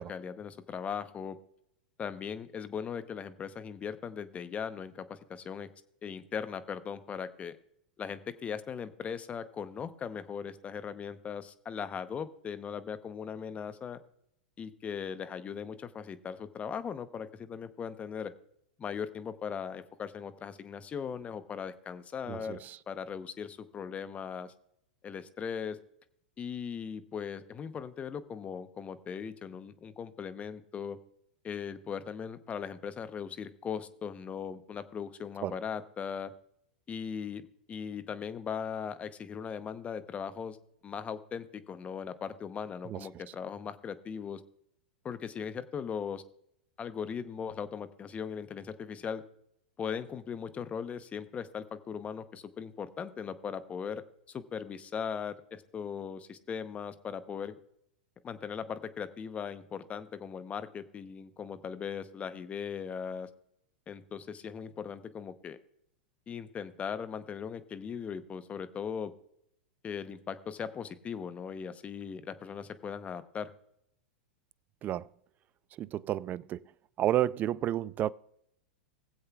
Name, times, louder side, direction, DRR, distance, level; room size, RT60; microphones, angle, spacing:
voice 1, 0.0-1.4 2.0-5.7 6.0-7.5 8.0-14.0 14.6-18.3 18.8-24.5 25.0-25.8 26.4-31.0 31.4-36.3 36.9-37.4 37.7-40.6 40.8-44.4 45.0-46.2 46.8-49.2 49.8-57.5 58.2-63.3 63.9-65.6 66.3-69.1 69.8-73.5, left 7 dB, 25° left, 0.8 m, -39 dB
voice 2, 22.3-22.8 35.4-35.6 42.9-43.1 74.8-75.1 75.8-76.6 77.0-78.1, right 12 dB, 30° right, 0.3 m, -31 dB
20.0 x 7.7 x 2.3 m
hypercardioid pair, 105°, 6 cm